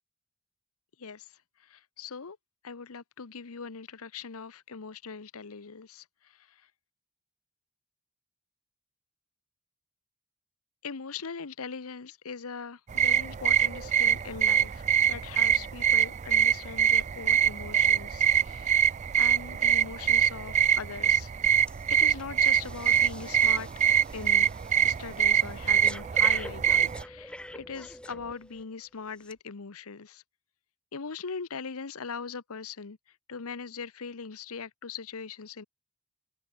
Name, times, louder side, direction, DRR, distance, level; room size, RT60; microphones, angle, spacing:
voice 1, 1.7-2.4 2.6-6.0 10.8-18.9 19.2-21.3 21.9-23.7 24.1-24.5 24.8-30.2 30.9-33.0 33.3-35.6, left 5 dB, 75° left, 0.9 m, -40 dB
sound 1, 12.9-27.0, right 8 dB, 30° right, 0.3 m, -24 dB
Breathing, 21.7-21.9 22.2-28.6 29.2-29.3, left 1 dB, 5° left, 5.9 m, -46 dB
head